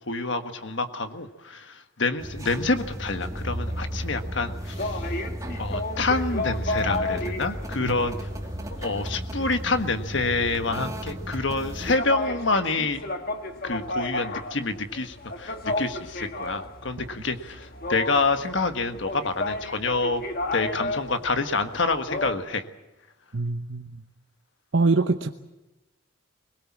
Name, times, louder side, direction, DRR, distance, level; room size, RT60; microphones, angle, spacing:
voice 1, 0.1-5.0 5.6-13.0 13.6-20.2 20.5-22.6, left 3 dB, 60° left, 8 dB, 1.5 m, -27 dB
Morning Walking City, 2.2-12.0, equal, 15° right, 1.9 m, -34 dB
sound 1, 3.3-22.3, left 2 dB, 45° left, 1.7 m, -33 dB
voice 2, 23.3-24.0 24.7-25.4, right 3 dB, 65° right, 7 dB, 0.9 m, -24 dB
22.5 x 20.5 x 7.4 m, 1.0 s
head